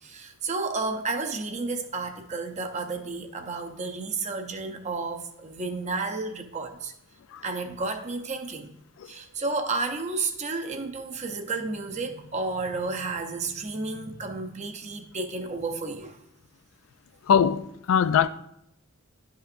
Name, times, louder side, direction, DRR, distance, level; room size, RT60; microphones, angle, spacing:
voice 1, 0.0-6.9 7.4-8.7 9.1-16.2, right 3 dB, 35° right, 0.6 m, -32 dB
voice 2, 17.3-18.3, left 7 dB, 65° left, 0.3 m, -21 dB
11.0 x 5.6 x 2.5 m
head